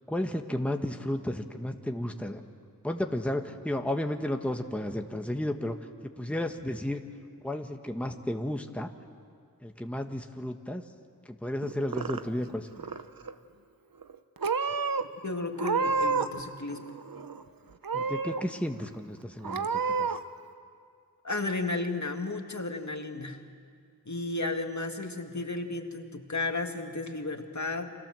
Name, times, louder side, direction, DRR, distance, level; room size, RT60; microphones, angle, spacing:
voice 1, 0.1-2.4 2.8-5.8 6.2-7.0 7.4-8.9 9.6-10.8 11.2-12.9 17.9-20.1, left 1 dB, 5° left, 4 dB, 1.4 m, -33 dB
Purr / Meow, 11.6-12.5 12.8-13.3 14.0-14.2 14.4-15.0 15.5-16.4 16.7-17.4 17.8-18.4 18.9-19.0 19.4-20.2, right 5 dB, 85° right, 0.9 m, -30 dB
voice 2, 15.2-16.9 21.2-23.4 24.1-27.9, left 2 dB, 55° left, 4 dB, 2.1 m, -33 dB
30.0 x 25.5 x 7.7 m, 2.2 s
wide cardioid pair, 45°, 34 cm